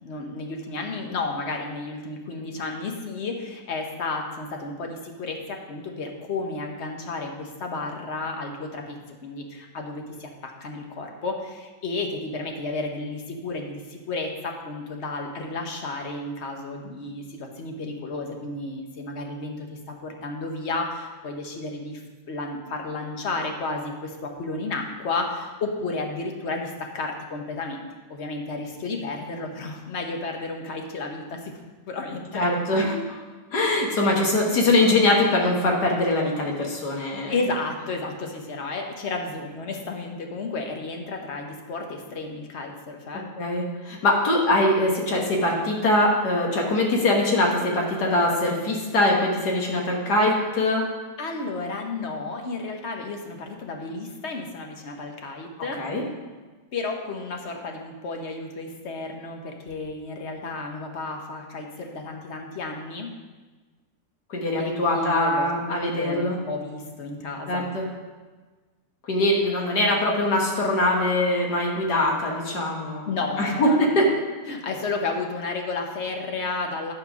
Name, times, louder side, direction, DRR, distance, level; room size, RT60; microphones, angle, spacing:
voice 1, 0.0-22.0 22.3-31.5 31.9-32.5 37.2-43.2 51.2-55.8 56.7-63.1 64.6-67.7 73.1-74.1 74.5-76.9, left 3 dB, 45° left, 2 dB, 1.1 m, -32 dB
voice 2, 32.3-33.2 33.5-37.3 43.4-50.8 55.8-56.0 64.3-66.4 67.5-67.8 69.1-73.1 73.4-74.1, left 1 dB, 65° left, -1 dB, 1.9 m, -22 dB
9.9 x 4.4 x 6.0 m, 1.3 s
omnidirectional pair, 1.9 m